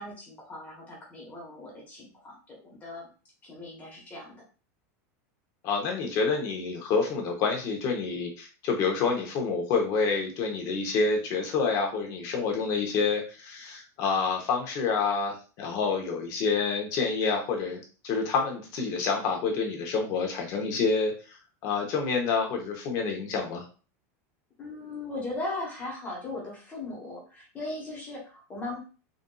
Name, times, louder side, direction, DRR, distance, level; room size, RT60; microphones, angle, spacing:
voice 1, 0.0-3.1 3.4-4.3 24.6-28.8, left 2 dB, 15° left, -2 dB, 1.1 m, -38 dB
voice 2, 5.6-21.4 21.6-23.6, left 4 dB, 40° left, 2 dB, 0.9 m, -28 dB
3.8 x 2.5 x 2.3 m, 0.35 s
supercardioid pair, 165°, 9 cm